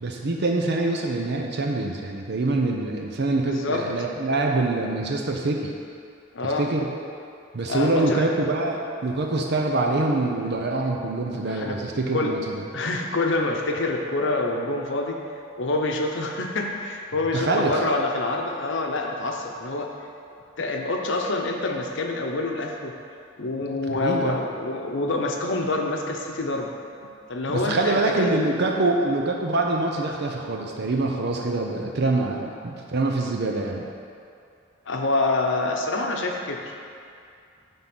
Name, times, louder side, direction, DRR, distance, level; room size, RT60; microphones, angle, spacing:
voice 1, 0.0-5.7 6.6-6.8 7.5-12.6 17.3-17.8 23.9-24.4 27.5-33.9, right 2 dB, 60° right, 1 dB, 0.7 m, -25 dB
voice 2, 3.4-3.9 6.3-6.7 7.7-8.3 11.5-11.8 12.1-12.4 12.7-15.2 15.6-19.9 20.6-23.0 23.4-26.7 27.3-28.5 34.9-36.7, left 2 dB, 65° left, 2 dB, 0.8 m, -26 dB
9.4 x 3.7 x 6.1 m, 2.5 s
head